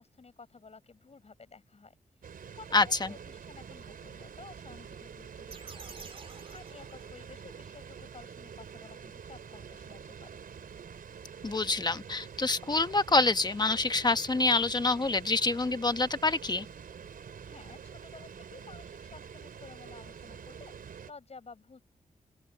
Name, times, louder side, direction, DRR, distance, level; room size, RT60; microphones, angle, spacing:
voice 1, 0.0-5.8 6.2-10.4 17.1-21.8, left 4 dB, 45° left, 7.7 m, -53 dB
sound 1, 2.2-21.1, right 7 dB, 80° right, 4.3 m, -47 dB
sound 2, 5.5-7.6, right 4 dB, 40° right, 2.7 m, -49 dB
voice 2, 11.4-16.7, left 3 dB, 30° left, 1.2 m, -26 dB
open air
wide cardioid pair, 90°, 15 cm